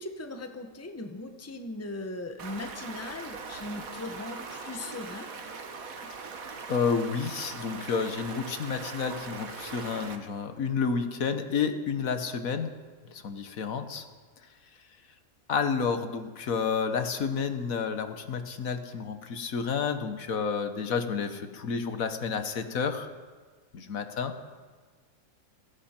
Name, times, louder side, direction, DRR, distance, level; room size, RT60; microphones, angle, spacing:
voice 1, 0.0-5.3, left 2 dB, 10° left, 6 dB, 0.9 m, -39 dB
Stream, 2.4-10.2, right 4 dB, 75° right, 1.7 m, -41 dB
voice 2, 6.7-12.7 13.1-14.0 15.5-23.1 23.7-24.3, left 6 dB, 75° left, 8 dB, 1.5 m, -30 dB
29.0 x 11.0 x 4.4 m, 1.5 s
omnidirectional pair, 1.5 m